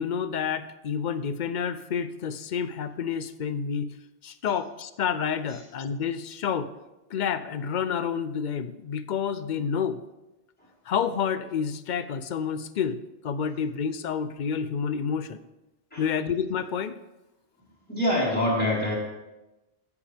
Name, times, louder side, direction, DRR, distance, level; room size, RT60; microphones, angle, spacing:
voice 1, 0.0-4.0 4.2-6.7 7.1-10.0 10.9-15.4 16.0-16.9, left 7 dB, 55° left, 13 dB, 0.6 m, -29 dB
voice 2, 17.9-18.9, left 1 dB, 10° left, -7 dB, 3.6 m, -24 dB
16.0 x 7.2 x 3.4 m, 1.0 s
omnidirectional pair, 1.1 m